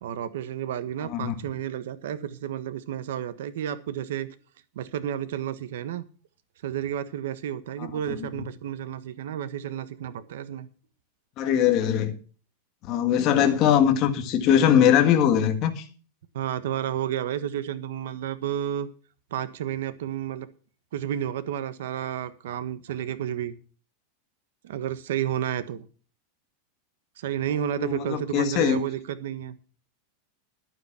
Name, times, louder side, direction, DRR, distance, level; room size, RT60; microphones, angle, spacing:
voice 1, 0.0-4.3 4.7-6.1 6.6-10.7 13.3-13.7 16.3-18.9 19.3-20.5 20.9-23.5 24.6-25.8 27.2-29.6, right 10 dB, 80° right, 1.3 m, -31 dB
voice 2, 1.0-1.3 7.8-8.3 11.4-12.2 12.8-15.8 27.8-28.8, left 9 dB, 35° left, 1.7 m, -21 dB
11.5 x 9.1 x 5.9 m
supercardioid pair, 160°, 0 cm